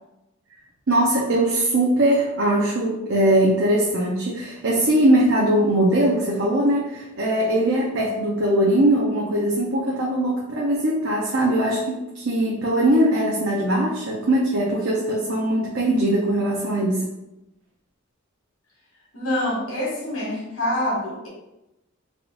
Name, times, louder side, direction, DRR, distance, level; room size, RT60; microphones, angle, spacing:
voice 1, 0.9-17.0, right 1 dB, 60° right, -4 dB, 0.6 m, -21 dB
voice 2, 19.1-21.3, left 1 dB, 90° left, -4 dB, 1.4 m, -26 dB
3.6 x 2.5 x 3.6 m, 0.94 s
head